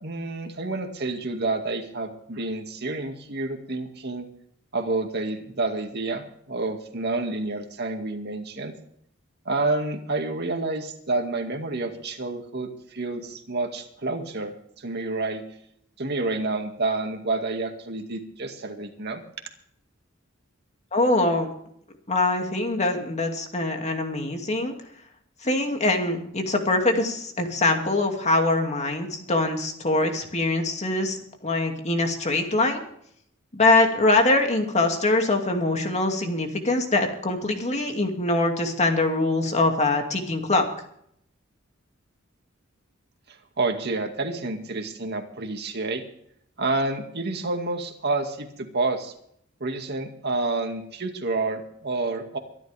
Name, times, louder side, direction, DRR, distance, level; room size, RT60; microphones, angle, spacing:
voice 1, 0.0-4.3 4.7-8.7 9.5-15.4 16.0-19.2 43.3-46.0 46.6-49.1 49.6-52.4, right 3 dB, 55° right, 4 dB, 2.2 m, -29 dB
voice 2, 20.9-21.5 22.1-24.7 25.4-31.2 31.4-32.8 33.5-40.7, left 2 dB, 35° left, 4 dB, 2.4 m, -23 dB
23.5 x 11.5 x 3.5 m, 0.68 s
head